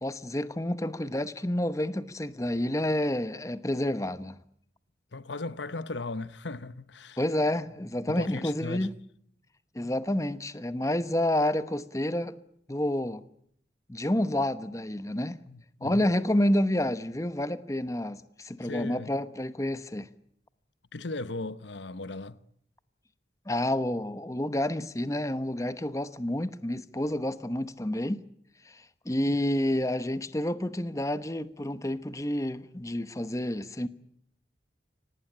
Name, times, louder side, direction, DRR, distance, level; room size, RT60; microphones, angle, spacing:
voice 1, 0.0-4.4 7.2-8.9 9.7-12.4 12.7-13.2 13.9-15.4 15.8-20.1 23.5-28.2 28.7-33.9, left 1 dB, 15° left, 1.0 m, -29 dB
voice 2, 5.1-7.2 8.1-8.9 15.5-16.1 18.6-19.1 20.9-22.4, left 3 dB, 80° left, 1.0 m, -37 dB
25.5 x 19.0 x 9.8 m
head